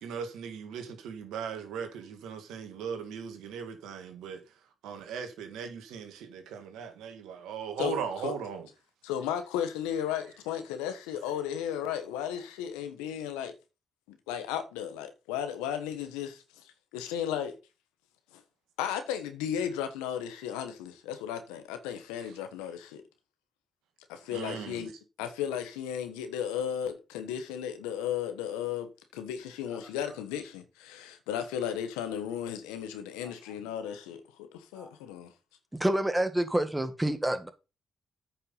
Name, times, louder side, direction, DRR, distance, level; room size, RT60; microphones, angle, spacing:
voice 1, 0.0-4.4 4.8-8.7 24.3-24.9, right 7 dB, 80° right, 1.8 m, -38 dB
voice 2, 7.8-8.3 9.0-13.5 14.1-16.6 16.9-17.6 18.3-18.4 18.8-23.0 24.1-24.9 25.2-34.2 34.5-35.3, left 9 dB, 90° left, 1.2 m, -35 dB
voice 3, 35.7-37.5, right 1 dB, 15° right, 2.0 m, -28 dB
8.9 x 5.8 x 5.7 m
hypercardioid pair, 45°, 0 cm